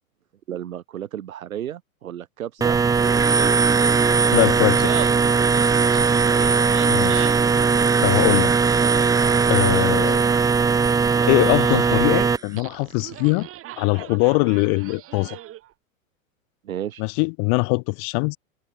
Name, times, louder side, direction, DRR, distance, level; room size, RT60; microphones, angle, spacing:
voice 1, 0.5-3.5 16.6-17.0, right 10 dB, 80° right, 4.4 m, -34 dB
sound 1, 2.6-12.4, right 5 dB, 10° right, 0.8 m, -19 dB
voice 2, 4.3-4.9 6.9-7.3 8.0-8.5 9.5-10.3 11.3-13.5 13.8-15.4 17.0-18.4, left 40 dB or more, 45° left, 1.6 m, -22 dB
Laughter, 4.6-15.7, right 14 dB, 30° right, 7.9 m, -38 dB
hypercardioid pair, 130°, 41 cm